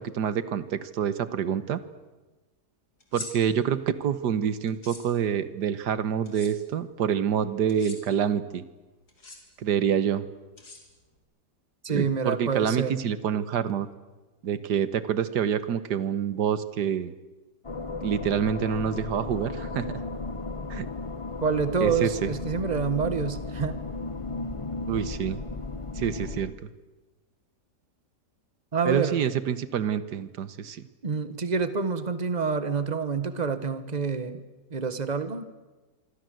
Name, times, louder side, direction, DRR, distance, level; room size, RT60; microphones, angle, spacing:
voice 1, 0.0-1.8 3.1-8.6 9.6-10.3 11.9-13.9 14.4-17.1 18.0-20.0 20.7-20.9 21.8-22.3 24.9-25.4 26.0-26.7 28.9-30.8, right 8 dB, 85° right, 14 dB, 1.8 m, -27 dB
sound 1, 3.0-3.3 4.7-5.0 6.2-6.5 7.7-8.0 9.1-9.4 10.6-11.2, left 2 dB, 70° left, 4.9 m, -42 dB
voice 2, 11.8-12.9 21.4-23.8 28.7-29.2 31.0-34.4 34.7-35.4, right 5 dB, 25° right, 12 dB, 1.5 m, -27 dB
sound 2, 17.6-26.5, left 3 dB, 25° left, 0.8 m, -35 dB
25.5 x 25.5 x 7.8 m, 1.2 s
omnidirectional pair, 1.7 m